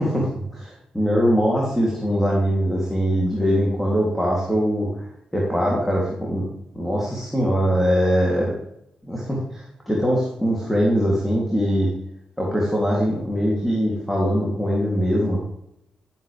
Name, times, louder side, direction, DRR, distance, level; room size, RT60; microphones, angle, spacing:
voice 1, 0.0-4.9 5.3-6.5 6.7-8.5 9.0-11.9 12.4-15.4, equal, ahead, -4 dB, 3.1 m, -22 dB
12.0 x 7.5 x 3.5 m, 0.80 s
supercardioid pair, 50°, 3 cm